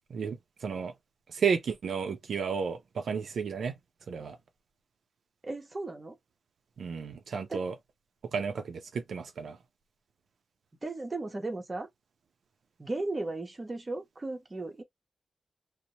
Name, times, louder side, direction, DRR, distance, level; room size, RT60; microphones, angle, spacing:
voice 1, 0.1-0.9 1.3-3.8 4.1-4.4 6.8-7.7 8.3-9.6, right 6 dB, 85° right, 0.5 m, -32 dB
voice 2, 5.4-6.2 7.5-7.6 10.8-11.9 12.8-14.8, right 2 dB, 25° right, 0.7 m, -36 dB
2.8 x 2.0 x 2.7 m
wide cardioid pair, 160°, 0 cm